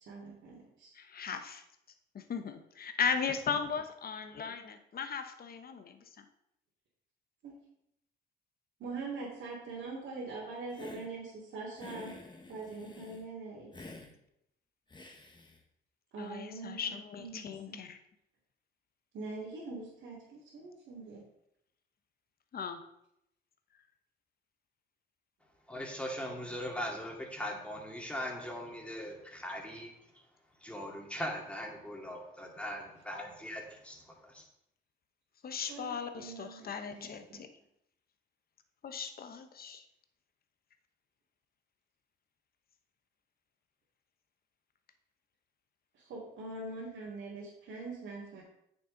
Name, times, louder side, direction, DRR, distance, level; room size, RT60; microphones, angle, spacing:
voice 1, 0.1-0.9 7.4-7.5 8.8-12.1 12.5-13.9 16.1-16.9 17.2-17.8 19.1-21.2 35.7-37.4 45.9-48.4, right 3 dB, 75° right, -7 dB, 2.6 m, -43 dB
voice 2, 0.9-1.6 2.3-6.2 16.2-18.0 22.5-22.8 35.4-37.5 38.8-39.8, left 6 dB, 50° left, 7 dB, 1.0 m, -37 dB
Hiss, 10.7-11.1 11.8-13.2 13.7-14.1 14.9-15.6, left 2 dB, 25° left, 1.4 m, -49 dB
voice 3, 25.7-29.9 30.6-34.4, equal, 5° left, -1 dB, 2.4 m, -40 dB
8.5 x 6.8 x 3.9 m, 0.79 s
cardioid pair, 90°, 20 cm